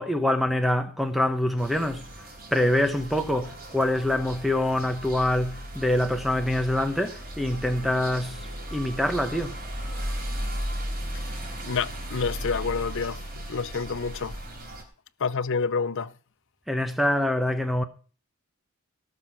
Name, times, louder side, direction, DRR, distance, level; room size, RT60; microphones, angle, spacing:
voice 1, 0.0-2.0 2.5-8.4 8.7-9.6 16.7-17.8, left 1 dB, ahead, 1.0 m, -25 dB
sound 1, 1.6-14.8, equal, 45° right, 4.1 m, -36 dB
voice 2, 11.6-14.4 15.2-16.1, left 5 dB, 55° left, 0.6 m, -28 dB
17.0 x 6.8 x 5.9 m
head